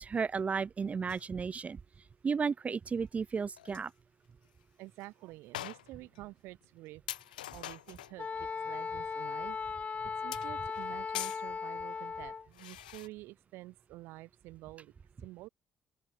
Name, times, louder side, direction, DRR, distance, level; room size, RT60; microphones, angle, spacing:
voice 1, 0.0-1.8 2.2-3.9, right 5 dB, 30° right, 0.4 m, -33 dB
sound 1, 1.1-1.3 3.3-3.4 3.6-3.9 4.4-4.5 5.0-5.1 5.5-6.2 6.6-6.7 7.1-8.2 10.3-11.5 12.5-13.1, left 14 dB, 75° left, 0.6 m, -43 dB
voice 2, 4.8-7.0 7.5-9.6 9.9-14.9 15.2-15.5, right 19 dB, 65° right, 2.2 m, -49 dB
Wind instrument woodwind instrument, 8.2-12.5, left 5 dB, 30° left, 0.6 m, -37 dB
open air
figure-of-eight pair, 45°, 5 cm